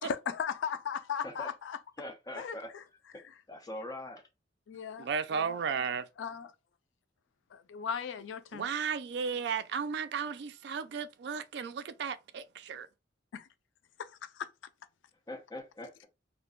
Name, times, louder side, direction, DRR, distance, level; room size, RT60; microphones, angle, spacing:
voice 1, 0.0-1.8 2.4-2.8 3.1-3.3 4.7-5.6 6.2-6.5 7.5-8.7 13.3-13.5 14.0-14.5, left 7 dB, 80° left, 0.4 m, -37 dB
voice 2, 2.0-2.7 3.5-4.2 15.3-16.1, left 1 dB, 20° left, 0.6 m, -42 dB
voice 3, 5.0-6.1 8.5-12.9, right 6 dB, 60° right, 0.3 m, -34 dB
2.5 x 2.2 x 3.6 m
head